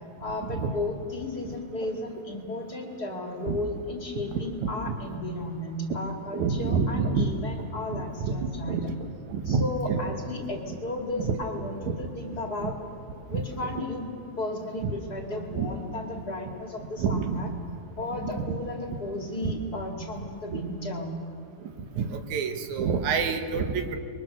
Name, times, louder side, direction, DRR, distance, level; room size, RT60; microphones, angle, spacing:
voice 1, 0.2-8.8 9.4-12.7 13.3-14.1 14.4-17.5 18.0-21.1, left 2 dB, 35° left, 1 dB, 2.5 m, -34 dB
voice 2, 4.3-5.2 6.3-7.3 7.9-8.9 9.3-10.0 11.2-11.3 11.8-12.0 12.6-12.7 13.3-13.8 14.8-14.9 15.5-15.7 17.0-17.4 18.2-18.5 19.4-19.5 20.5-20.6 21.6-21.7 22.0-24.0, right 5 dB, 80° right, 6 dB, 2.7 m, -28 dB
29.0 x 22.5 x 6.3 m, 2.5 s
omnidirectional pair, 3.3 m